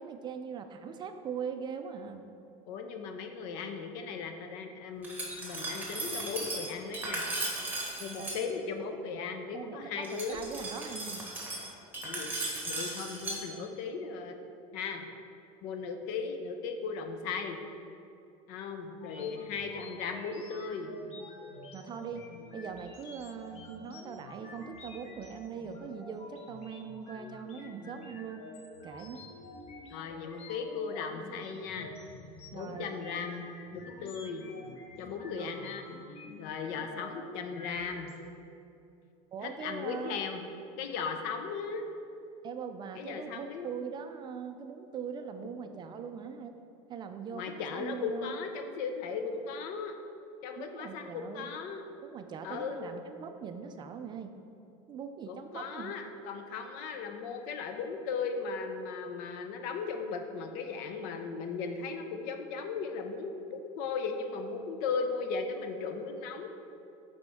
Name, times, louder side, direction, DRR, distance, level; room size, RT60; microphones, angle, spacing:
voice 1, 0.0-2.2 8.2-8.3 9.5-11.3 19.1-19.3 21.7-22.2 22.5-28.4 28.8-29.2 32.5-32.9 35.2-35.5 39.3-40.2 42.4-46.5 46.9-48.4 50.6-51.5 52.0-54.4 54.9-55.9, right 6 dB, 30° right, 7 dB, 0.3 m, -41 dB
voice 2, 2.7-7.3 8.0-10.4 12.0-12.3 12.7-14.4 14.7-15.0 15.6-17.6 18.5-20.9 29.9-31.9 32.5-34.4 35.0-35.8 36.4-38.1 39.4-40.4 40.8-41.9 42.9-43.7 47.3-50.0 50.4-51.8 52.4-53.0 55.3-66.5, left 5 dB, 65° left, 6 dB, 0.7 m, -37 dB
Glass, 5.0-8.4 10.0-13.4, right 2 dB, 10° right, 1.2 m, -37 dB
sound 1, 18.9-38.1, left 2 dB, 40° left, 1.1 m, -49 dB
7.9 x 4.3 x 3.5 m, 2.6 s
supercardioid pair, 135°, 16 cm